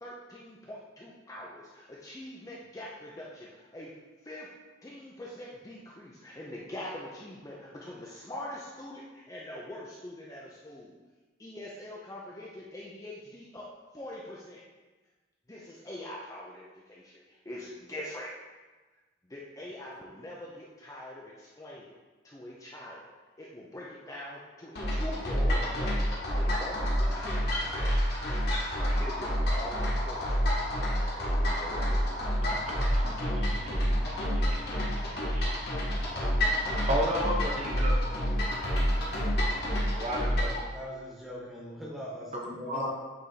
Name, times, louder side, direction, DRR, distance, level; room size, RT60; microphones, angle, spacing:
voice 1, 0.0-3.9 4.2-4.5 4.8-11.0 11.4-13.7 13.9-14.6 15.5-18.3 19.3-21.9 22.2-23.1 23.4-27.4 29.0-32.0, left 1 dB, 15° left, -4 dB, 0.6 m, -43 dB
sound 1, 24.7-40.6, equal, 50° left, 1.5 m, -28 dB
voice 2, 32.5-33.9 35.3-36.3 36.8-38.0 39.9-40.5 42.3-42.9, equal, 35° right, -1 dB, 0.9 m, -34 dB
voice 3, 34.7-36.0 40.7-42.9, equal, ahead, -5 dB, 1.2 m, -42 dB
8.3 x 3.5 x 4.1 m, 1.3 s
head